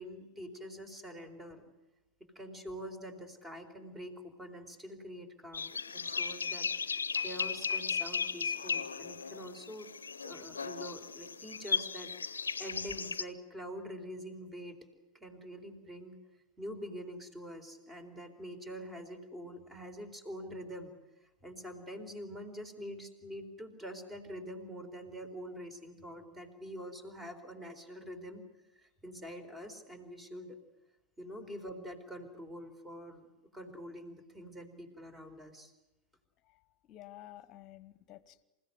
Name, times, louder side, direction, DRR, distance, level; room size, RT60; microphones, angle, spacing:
voice 1, 0.0-1.7 2.3-9.9 10.2-14.8 15.1-16.2 16.6-28.4 28.7-30.6 31.2-33.3 33.5-35.7, equal, 15° right, 9 dB, 4.0 m, -45 dB
sound 1, 5.5-13.2, left 5 dB, 75° left, 0.9 m, -36 dB
voice 2, 36.4-38.4, left 14 dB, 35° left, 16 dB, 1.4 m, -52 dB
28.0 x 16.5 x 9.5 m, 1.0 s
figure-of-eight pair, 90°, 0 cm